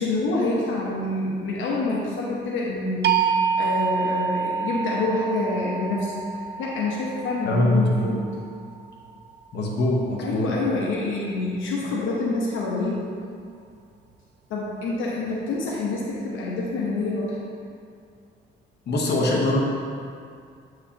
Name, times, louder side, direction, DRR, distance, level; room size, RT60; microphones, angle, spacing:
voice 1, 0.0-8.2 10.2-13.1 14.5-17.4, left 2 dB, 80° left, -4 dB, 1.1 m, -27 dB
sound 1, 3.0-9.0, right 6 dB, 60° right, 0.5 m, -27 dB
voice 2, 7.4-8.2 9.5-10.6 18.9-19.6, left 1 dB, 55° left, -3 dB, 1.2 m, -22 dB
8.3 x 4.8 x 2.9 m, 2.3 s
cardioid pair, 90°, 20 cm